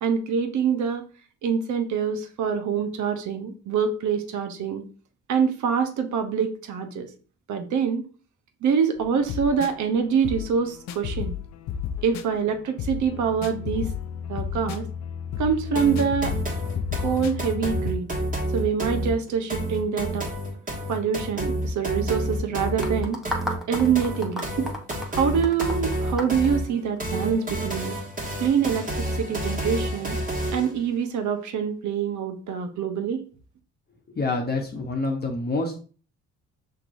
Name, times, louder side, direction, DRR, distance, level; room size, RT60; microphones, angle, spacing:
voice 1, 0.0-1.0 1.4-4.8 5.3-7.1 7.5-8.0 8.6-11.3 12.0-13.9 14.3-14.8 15.4-16.3 17.0-18.1 18.5-20.3 20.9-23.2 23.7-24.7 25.1-27.9 28.4-28.9 29.2-30.2 30.5-33.2, right 7 dB, 75° right, 6 dB, 0.9 m, -25 dB
sound 1, 9.0-17.9, left 7 dB, 65° left, 0.5 m, -32 dB
sound 2, 15.8-30.8, right 1 dB, 25° right, 1.4 m, -29 dB
sound 3, 22.8-27.2, left 1 dB, ahead, 0.9 m, -33 dB
voice 2, 34.2-35.8, left 3 dB, 30° left, 1 dB, 0.9 m, -27 dB
6.6 x 3.0 x 2.6 m, 0.39 s
cardioid pair, 90°, 30 cm